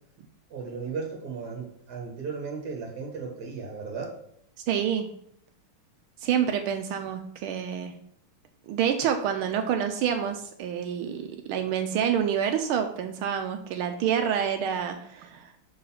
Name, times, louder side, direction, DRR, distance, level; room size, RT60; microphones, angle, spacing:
voice 1, 0.5-4.1, right 5 dB, 50° right, -2 dB, 1.7 m, -35 dB
voice 2, 4.7-5.1 6.2-7.9 8.7-11.2 11.5-15.5, right 8 dB, 80° right, 5 dB, 1.5 m, -27 dB
6.3 x 3.9 x 5.7 m, 0.69 s
omnidirectional pair, 2.4 m